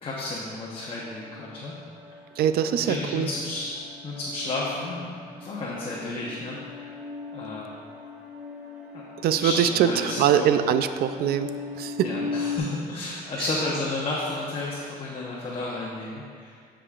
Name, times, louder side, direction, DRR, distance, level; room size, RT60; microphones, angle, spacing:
voice 1, 0.0-1.7 2.7-3.8 4.0-5.1 5.4-6.9 7.3-7.7 8.9-9.0 9.4-10.5 12.0-16.6, left 2 dB, 35° left, -5 dB, 1.0 m, -32 dB
sound 1, 0.9-12.6, left 4 dB, 5° right, 1.2 m, -39 dB
voice 2, 2.4-3.3 9.2-11.5 11.8-12.1, right 9 dB, 65° right, 10 dB, 0.4 m, -23 dB
12.5 x 5.0 x 2.5 m, 2.1 s
cardioid pair, 110°, 17 cm